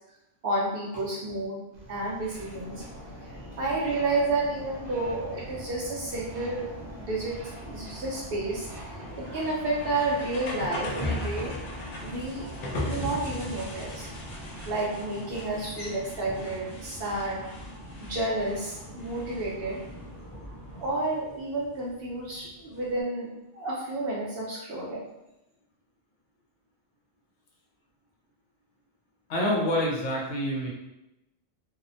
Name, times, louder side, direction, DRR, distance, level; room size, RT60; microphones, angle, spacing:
voice 1, 0.4-1.6 1.9-2.8 3.6-6.7 7.0-7.3 7.7-8.7 9.2-11.5 12.0-12.5 12.7-14.1 14.7-17.4 18.0-19.8 20.8-23.3 23.5-25.0, right 2 dB, 60° right, -4 dB, 0.7 m, -30 dB
sound 1, 1.7-14.8, right 1 dB, 80° right, 1.0 m, -47 dB
sound 2, 2.4-20.9, equal, 15° left, 0.6 m, -44 dB
sound 3, 5.0-23.0, left 1 dB, 55° left, 0.4 m, -40 dB
voice 2, 29.3-30.7, equal, 75° left, -2 dB, 1.0 m, -27 dB
2.7 x 2.0 x 2.6 m, 0.93 s
omnidirectional pair, 1.3 m